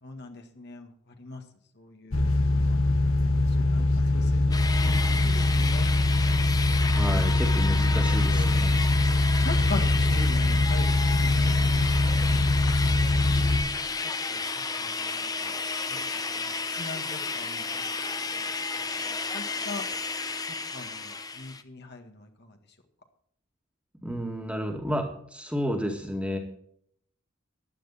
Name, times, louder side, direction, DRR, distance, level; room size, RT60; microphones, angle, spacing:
voice 1, 0.0-1.4 1.7-2.8 3.1-5.9 9.4-11.7 12.1-13.0 13.4-14.5 14.8-15.6 15.9-17.8 18.2-18.5 18.8-19.8 20.7-22.6, left 2 dB, 55° left, 4 dB, 1.8 m, -42 dB
sound 1, 2.1-13.6, left 2 dB, 85° left, 1.4 m, -23 dB
sound 2, 4.5-21.6, left 4 dB, 20° left, 0.8 m, -32 dB
voice 2, 6.8-8.8 24.0-26.4, equal, 5° right, 2 dB, 2.1 m, -31 dB
14.5 x 10.5 x 4.2 m, 0.65 s
head